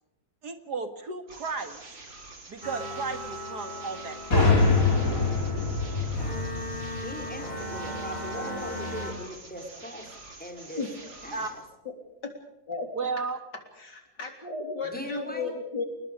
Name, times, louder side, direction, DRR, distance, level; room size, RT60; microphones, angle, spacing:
voice 1, 0.4-1.8 2.5-4.5 11.3-11.5 13.0-13.4, right 4 dB, 60° right, 7 dB, 2.5 m, -34 dB
sound 1, 1.3-11.6, right 2 dB, 80° right, 4.8 m, -47 dB
sound 2, 2.6-9.1, equal, 20° left, 7.3 m, -38 dB
sound 3, 4.3-8.0, left 3 dB, 45° left, 5.0 m, -25 dB
voice 2, 6.9-10.1 10.4-10.8 11.2-11.6 14.8-15.5, equal, 5° left, 3 dB, 3.8 m, -39 dB
voice 3, 10.8-11.1 11.9-12.0 12.2-12.3 12.7-12.9 13.8-15.8, left 4 dB, 65° left, 4 dB, 4.1 m, -34 dB
29.0 x 20.5 x 5.2 m, 0.94 s
omnidirectional pair, 2.0 m